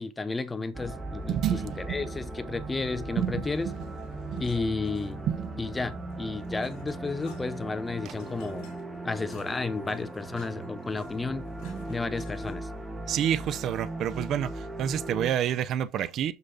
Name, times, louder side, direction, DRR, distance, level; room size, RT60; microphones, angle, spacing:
voice 1, 0.0-3.7 4.4-5.2 5.6-8.7 9.0-11.4 11.9-12.7, left 3 dB, 15° left, 0.6 m, -32 dB
sound 1, 0.7-15.3, right 2 dB, 10° right, 1.4 m, -38 dB
voice 2, 1.3-2.1 3.2-3.9 4.3-4.4 5.3-5.6 8.0-8.1 11.6-12.0 13.1-16.3, right 10 dB, 50° right, 0.5 m, -29 dB
sound 2, 3.7-5.4 5.8-12.8, left 6 dB, 65° left, 2.7 m, -54 dB
6.8 x 6.6 x 2.8 m
supercardioid pair, 105°, 0 cm